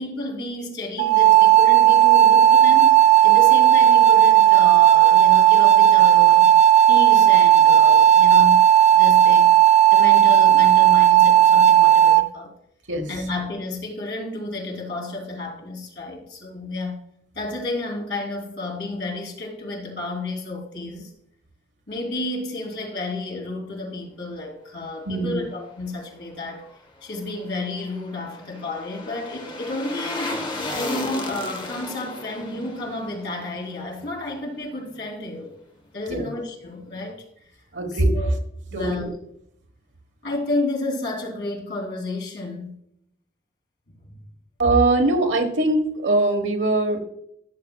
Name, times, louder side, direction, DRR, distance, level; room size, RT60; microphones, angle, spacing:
voice 1, 0.0-6.5 6.9-8.6 8.9-9.5 9.9-12.5 13.1-17.0 17.3-21.1 21.9-35.5 35.9-37.2 37.9-38.3 38.7-39.1 40.2-42.8 44.0-44.2, left 2 dB, 70° left, -2 dB, 3.1 m, -31 dB
sound 1, 1.0-12.2, right 11 dB, 40° right, 0.5 m, -14 dB
voice 2, 25.1-25.4 36.1-36.3 37.7-38.2 38.7-39.1 44.6-47.0, right 2 dB, 75° right, 5 dB, 1.3 m, -21 dB
sound 2, 27.4-34.6 34.9-35.0, left 2 dB, 25° left, 1.0 m, -34 dB
15.5 x 7.0 x 2.3 m, 0.73 s
head